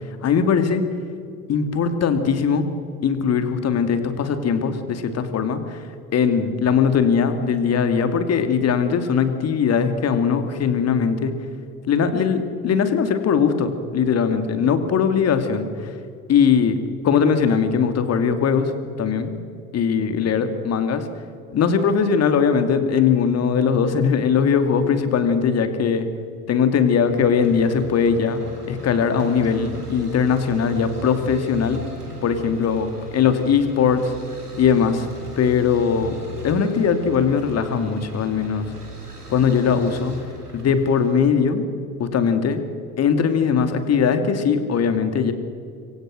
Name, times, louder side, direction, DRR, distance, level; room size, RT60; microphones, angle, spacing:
voice 1, 0.2-0.8 1.5-2.7 3.0-5.9 6.1-11.4 11.9-15.9 16.3-18.7 19.0-19.3 19.7-21.1 21.5-26.1 26.5-28.4 28.7-31.8 32.2-34.1 34.6-35.1 35.4-36.2 36.4-38.7 39.3-40.2 40.5-41.7 42.0-42.6 43.0-45.3, left 6 dB, 35° left, 9 dB, 2.6 m, -20 dB
sound 1, 26.9-41.3, equal, 90° right, 3.7 m, -38 dB
26.5 x 23.5 x 6.4 m, 2.4 s
figure-of-eight pair, 70°, 45 cm